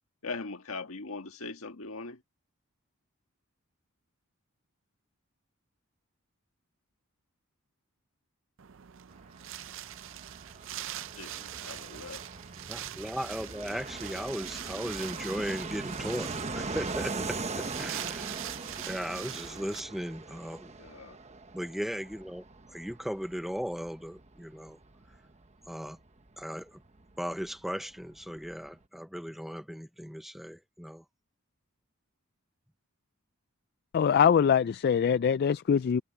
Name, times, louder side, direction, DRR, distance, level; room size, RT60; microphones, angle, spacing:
voice 1, 0.2-2.2 11.2-12.2 20.8-21.2, left 3 dB, 75° left, 1.7 m, -40 dB
Wind, 8.6-19.8, right 12 dB, 60° right, 0.5 m, -43 dB
Fixed-wing aircraft airplane, 9.1-27.5 27.7-27.8 28.0-28.8, right 3 dB, 30° right, 1.1 m, -41 dB
voice 2, 12.7-18.4 18.8-20.7 21.5-22.4 22.7-24.8 25.7-26.0 26.4-26.8 27.2-31.0, equal, ahead, 0.6 m, -37 dB
voice 3, 33.9-36.0, left 7 dB, 45° left, 0.3 m, -23 dB
head